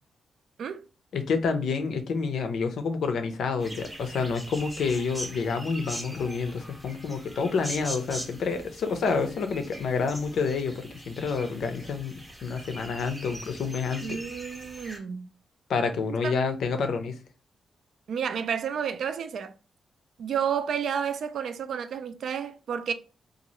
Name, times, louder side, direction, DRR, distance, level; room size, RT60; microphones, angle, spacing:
voice 1, 1.1-14.2 15.7-17.2, left 5 dB, 75° left, 0.5 m, -28 dB
sound 1, 3.6-15.0, equal, 5° right, 0.7 m, -42 dB
voice 2, 14.0-15.3 16.2-16.3 18.1-19.5 20.2-22.9, right 7 dB, 70° right, 0.3 m, -31 dB
2.7 x 2.4 x 2.9 m
cardioid pair, 115°, 0 cm